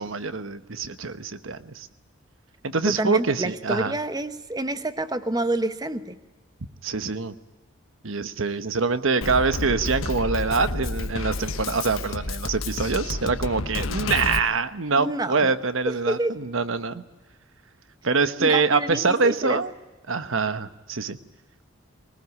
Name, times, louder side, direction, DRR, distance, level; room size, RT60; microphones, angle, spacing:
voice 1, 0.0-1.9 2.6-3.9 6.8-7.3 8.0-17.0 18.0-19.7 20.1-21.2, right 4 dB, 75° right, 11 dB, 1.1 m, -25 dB
voice 2, 2.9-6.2 14.9-15.5 15.8-16.3 18.4-19.6, right 1 dB, 20° right, 10 dB, 1.0 m, -28 dB
Drum kit, 9.2-14.4, left 2 dB, 80° left, 1.2 m, -30 dB
21.0 x 19.5 x 9.6 m, 1.1 s
head